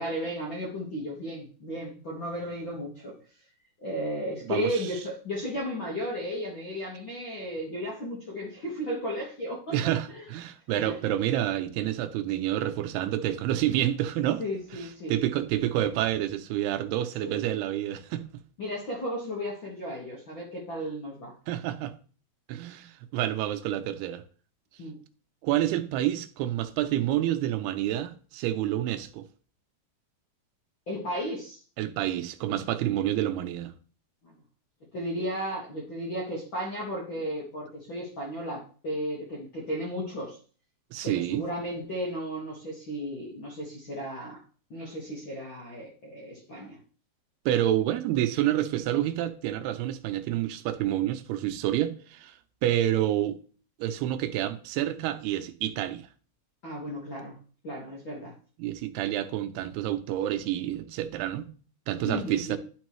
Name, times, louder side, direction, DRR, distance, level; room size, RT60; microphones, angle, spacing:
voice 1, 0.0-3.1 3.8-9.7 10.2-10.3 10.8-11.0 14.4-15.2 17.2-17.4 18.6-21.3 24.8-25.0 30.9-31.6 32.0-32.1 34.9-40.4 41.0-44.4 44.7-46.8 56.6-57.4 57.6-58.3 62.1-62.6, equal, 60° left, 1.3 m, -34 dB
voice 2, 4.5-4.9 9.7-14.4 14.7-18.3 21.5-21.9 22.5-24.2 25.4-29.2 31.8-33.7 40.9-41.4 47.5-52.3 52.6-53.4 53.8-56.1 58.6-61.5 61.9-62.6, right 12 dB, 90° right, 2.7 m, -28 dB
11.5 x 4.5 x 3.1 m
omnidirectional pair, 4.5 m